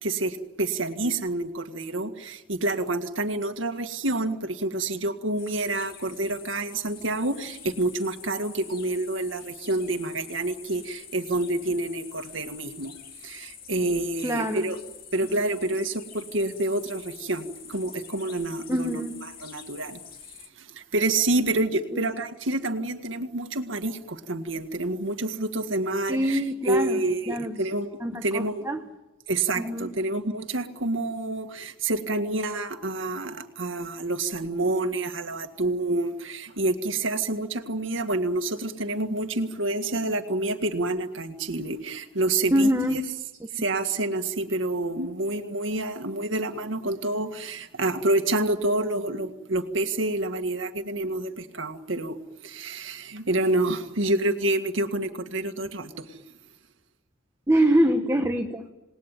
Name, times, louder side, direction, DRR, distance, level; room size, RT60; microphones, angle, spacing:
voice 1, 0.0-12.9 13.2-14.8 15.1-19.0 19.4-20.0 20.6-28.7 29.3-43.0 43.5-52.2 52.4-56.2, right 2 dB, 80° right, 7 dB, 1.9 m, -28 dB
sound 1, 5.4-20.5, left 7 dB, 50° left, 2.2 m, -46 dB
voice 2, 14.2-14.7 18.7-19.2 21.9-22.0 26.1-27.0 27.3-27.6 28.0-28.9 29.6-29.9 42.5-43.0 57.5-58.6, equal, 15° right, 4 dB, 1.2 m, -24 dB
28.0 x 19.5 x 9.2 m, 1.0 s
head